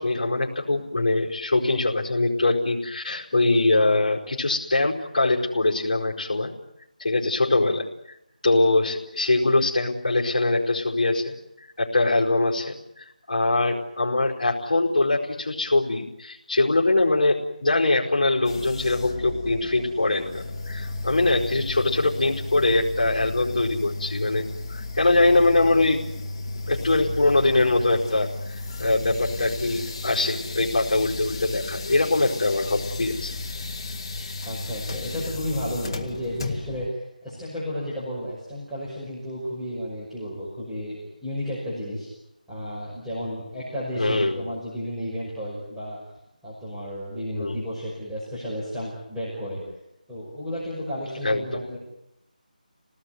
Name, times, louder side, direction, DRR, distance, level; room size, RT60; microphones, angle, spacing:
voice 1, 0.0-6.5 7.0-8.1 8.4-11.3 11.8-20.3 20.7-26.0 26.7-33.3 44.0-44.4 47.3-47.6 51.2-51.6, left 2 dB, 55° left, -5 dB, 4.8 m, -23 dB
sound 1, 18.4-36.9, left 2 dB, 30° left, 1.7 m, -34 dB
voice 2, 34.4-42.1 42.5-46.0 46.4-49.6 50.1-51.8, equal, 5° right, -11 dB, 6.0 m, -32 dB
28.5 x 19.0 x 9.6 m, 0.84 s
figure-of-eight pair, 165°, 5 cm